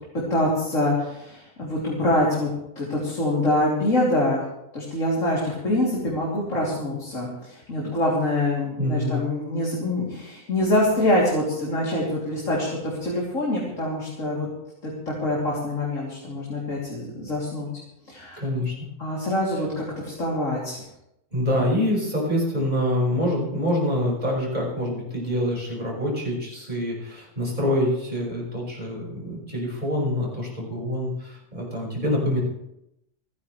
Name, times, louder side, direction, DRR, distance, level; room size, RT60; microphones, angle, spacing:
voice 1, 0.3-2.5 2.8-4.4 4.7-14.5 14.8-17.7 18.1-18.4 19.0-20.8, left 1 dB, 75° left, -5 dB, 3.6 m, -25 dB
voice 2, 8.8-9.2 18.4-18.9 21.3-32.4, left 1 dB, 35° right, -3 dB, 5.7 m, -26 dB
29.5 x 10.5 x 3.3 m, 0.83 s
omnidirectional pair, 1.3 m